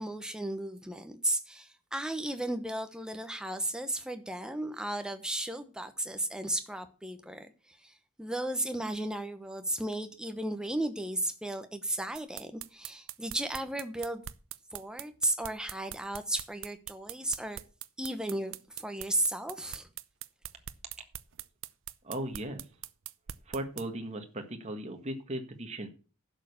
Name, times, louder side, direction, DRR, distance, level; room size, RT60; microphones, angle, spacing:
voice 1, 0.0-14.2 14.7-17.6 18.0-19.9, right 1 dB, 5° right, 1.0 m, -34 dB
sound 1, 12.2-23.9, right 12 dB, 55° right, 0.6 m, -42 dB
voice 2, 22.0-22.7 23.4-25.9, right 1 dB, 30° right, 1.5 m, -37 dB
11.0 x 6.7 x 7.0 m
head